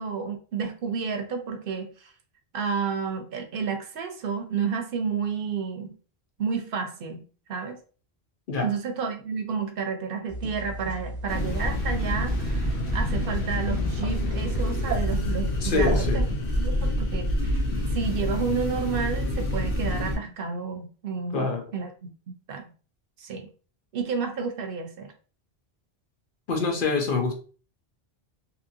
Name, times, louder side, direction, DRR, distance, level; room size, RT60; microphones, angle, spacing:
voice 1, 0.0-2.1 2.5-5.9 6.4-7.2 7.5-7.8 8.6-16.2 16.6-17.6 17.9-22.6 23.2-23.5 23.9-25.1, right 6 dB, 65° right, 5 dB, 0.7 m, -31 dB
sound 1, 10.3-16.9, right 1 dB, 10° right, 0.9 m, -35 dB
sound 2, 11.3-20.2, left 1 dB, 85° left, 1.0 m, -27 dB
voice 2, 15.6-16.2 21.3-21.6 26.5-27.3, left 4 dB, 60° left, 2 dB, 0.8 m, -25 dB
2.8 x 2.6 x 2.6 m, 0.38 s
omnidirectional pair, 1.1 m